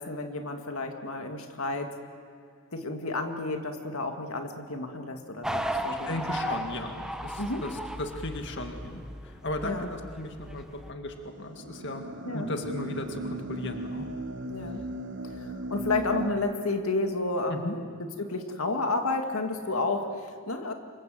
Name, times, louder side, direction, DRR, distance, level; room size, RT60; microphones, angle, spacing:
voice 1, 0.0-1.9 2.7-6.6 7.4-7.6 9.6-9.9 12.3-12.5 14.5-14.8 15.2-20.7, left 3 dB, 80° left, 5 dB, 2.1 m, -31 dB
sound 1, 5.4-10.9, equal, 5° right, 1.0 m, -36 dB
voice 2, 5.9-12.1 12.3-14.1 17.5-17.8, left 1 dB, 55° left, 5 dB, 2.0 m, -36 dB
sound 2, 11.1-16.3, right 1 dB, 55° right, 1.3 m, -37 dB
28.0 x 25.5 x 7.8 m, 2.2 s
head